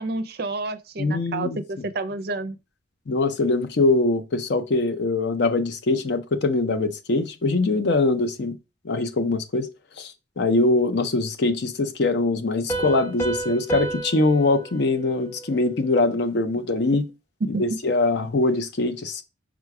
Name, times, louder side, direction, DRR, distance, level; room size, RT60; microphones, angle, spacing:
voice 1, 0.0-2.6 17.5-17.6, right 2 dB, 50° right, 0.5 m, -29 dB
voice 2, 1.0-1.6 3.1-8.6 8.8-9.7 10.0-17.1 17.5-19.2, left 2 dB, 55° left, 0.5 m, -23 dB
Piano, 12.7-16.1, right 2 dB, 15° left, 0.7 m, -32 dB
4.9 x 2.2 x 4.6 m
head